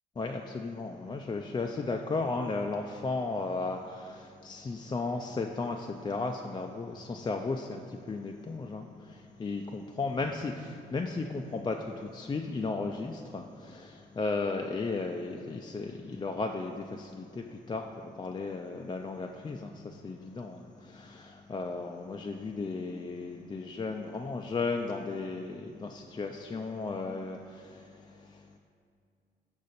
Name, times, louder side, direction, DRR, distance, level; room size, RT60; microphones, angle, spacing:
voice 1, 0.2-28.6, left 3 dB, 25° left, 2 dB, 0.4 m, -35 dB
5.4 x 5.1 x 4.0 m, 2.3 s
supercardioid pair, 55°, 19 cm